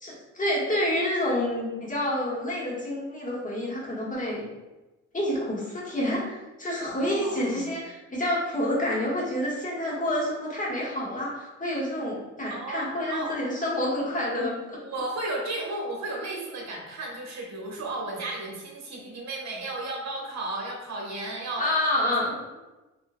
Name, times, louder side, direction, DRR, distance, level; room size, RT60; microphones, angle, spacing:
voice 1, 0.0-4.4 5.1-14.8 21.6-22.3, left 1 dB, 25° left, -5 dB, 1.4 m, -28 dB
voice 2, 6.9-7.7 12.5-13.3 14.8-21.6 21.9-22.6, right 2 dB, 65° right, -1 dB, 1.2 m, -34 dB
4.6 x 3.0 x 2.2 m, 1.1 s
cardioid pair, 90°, 30 cm